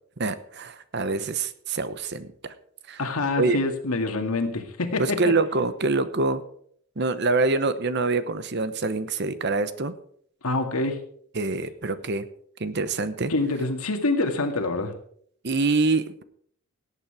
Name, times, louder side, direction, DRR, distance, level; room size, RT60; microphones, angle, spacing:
voice 1, 0.2-2.5 2.9-3.0 3.4-3.6 5.0-6.4 7.0-9.9 11.3-12.3 12.6-13.3 15.4-16.2, right 3 dB, 50° right, 13 dB, 0.9 m, -25 dB
voice 2, 3.0-5.3 10.4-11.0 13.3-14.9, left 2 dB, 80° left, 6 dB, 2.0 m, -26 dB
17.5 x 8.7 x 4.9 m, 0.62 s
head